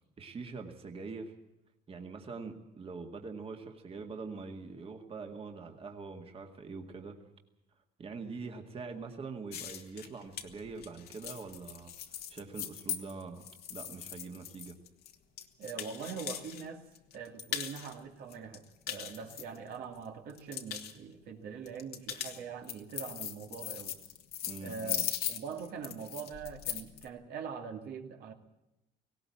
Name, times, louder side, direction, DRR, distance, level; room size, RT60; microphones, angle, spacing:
voice 1, 0.2-1.4 1.9-7.2 8.0-11.9 12.3-14.8 24.4-25.0, right 4 dB, 35° right, 3 dB, 2.0 m, -44 dB
sound 1, 9.5-16.6 16.9-17.9 18.3-20.0 20.3-20.9 21.7-27.0, left 10 dB, 70° left, 1.8 m, -39 dB
voice 2, 15.6-16.8 17.1-24.0 24.6-28.3, right 6 dB, 70° right, 3 dB, 2.4 m, -43 dB
18.5 x 17.5 x 8.6 m, 0.90 s
cardioid pair, 110°, 17 cm